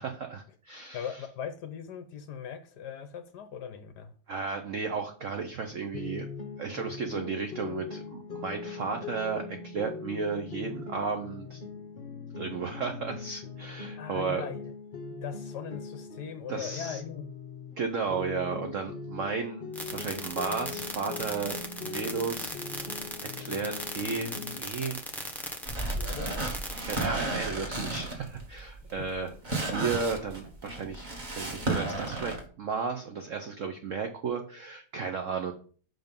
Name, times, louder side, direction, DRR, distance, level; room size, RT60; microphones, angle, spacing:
voice 1, 0.0-1.2 4.3-6.3 6.6-11.6 12.4-14.5 16.5-17.0 17.8-22.5 23.4-25.0 26.9-29.3 29.6-35.5, right 5 dB, 75° right, 0.7 m, -34 dB
voice 2, 0.9-4.1 14.0-14.7 15.1-17.3 26.0-26.3 29.0-29.1, left 8 dB, 70° left, 1.1 m, -39 dB
sound 1, 5.9-17.8 18.1-24.6, left 4 dB, 50° left, 0.7 m, -41 dB
sound 2, 19.7-27.1, equal, ahead, 0.4 m, -37 dB
sound 3, 25.7-32.4, right 2 dB, 25° right, 1.2 m, -33 dB
5.9 x 5.2 x 5.3 m
omnidirectional pair, 2.3 m